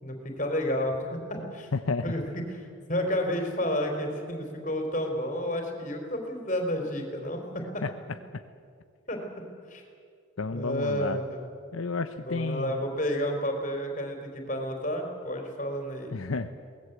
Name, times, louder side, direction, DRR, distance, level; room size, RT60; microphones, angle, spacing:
voice 1, 0.0-1.7 2.0-2.2 2.9-7.8 9.1-9.4 9.7-9.8 10.5-11.4 12.2-16.1, equal, 35° left, 3 dB, 4.1 m, -31 dB
voice 2, 1.7-2.1 7.8-8.2 10.4-11.2 11.7-12.8 16.1-16.5, left 3 dB, 85° left, 8 dB, 0.8 m, -31 dB
23.0 x 19.0 x 8.3 m, 2.1 s
head